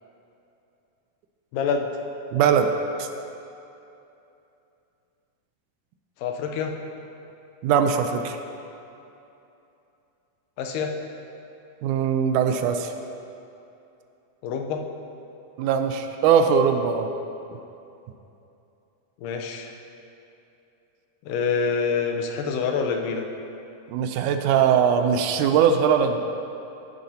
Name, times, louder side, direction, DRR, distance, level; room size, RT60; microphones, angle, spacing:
voice 1, 1.5-1.9 6.2-6.7 10.6-10.9 14.4-14.8 19.2-19.7 21.3-23.3, left 5 dB, 85° left, 4 dB, 2.4 m, -26 dB
voice 2, 2.3-2.7 3.0-3.1 7.6-8.4 11.8-12.9 15.6-17.1 23.9-26.2, right 7 dB, 80° right, 7 dB, 2.0 m, -21 dB
14.5 x 9.3 x 2.8 m, 2.8 s
omnidirectional pair, 3.7 m